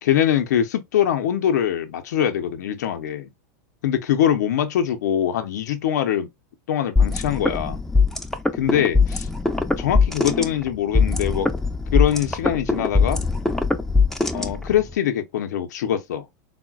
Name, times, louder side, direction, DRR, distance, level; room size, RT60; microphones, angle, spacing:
voice 1, 0.0-3.3 3.8-6.3 6.7-7.8 8.6-9.3 9.8-11.5 11.9-13.2 14.3-16.2, left 10 dB, 80° left, 0.5 m, -23 dB
sound 1, 7.0-14.9, left 4 dB, 5° left, 0.4 m, -21 dB
3.7 x 2.1 x 2.2 m
hypercardioid pair, 115°, 9 cm